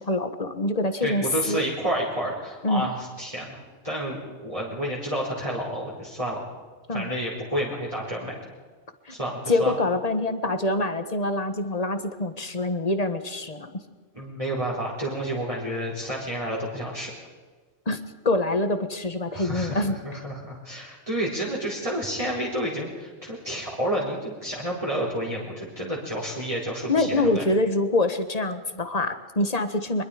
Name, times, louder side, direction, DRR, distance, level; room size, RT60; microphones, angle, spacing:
voice 1, 0.0-1.6 2.6-2.9 6.9-7.1 9.0-9.2 9.5-13.7 17.8-19.9 26.9-30.0, left 2 dB, 30° left, 9 dB, 1.5 m, -25 dB
voice 2, 1.0-3.6 3.8-6.4 6.9-8.4 9.1-9.8 14.1-17.1 19.3-27.4, right 1 dB, 25° right, -5 dB, 4.5 m, -30 dB
24.5 x 22.5 x 5.2 m, 1.4 s
omnidirectional pair, 1.4 m